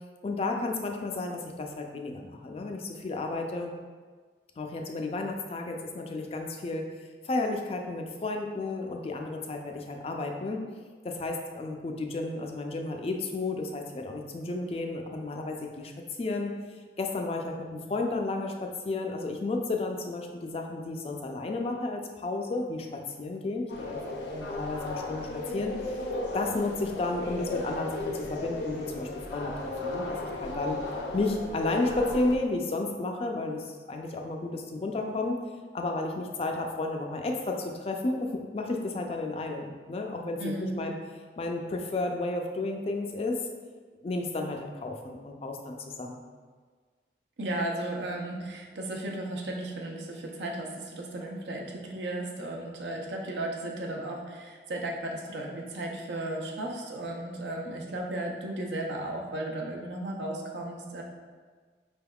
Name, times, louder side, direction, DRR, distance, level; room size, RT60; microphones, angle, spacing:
voice 1, 0.2-3.7 4.6-6.9 7.2-16.5 17.0-26.1 26.3-29.5 29.8-30.8 31.1-35.4 35.7-41.0 41.4-43.4 44.0-46.2, left 2 dB, 35° left, 2 dB, 0.3 m, -32 dB
sound 1, 23.7-32.4, left 2 dB, 85° left, 0.6 m, -35 dB
voice 2, 40.4-40.8 47.4-61.0, right 1 dB, 80° right, 0 dB, 0.6 m, -35 dB
5.1 x 3.4 x 2.3 m, 1.5 s
head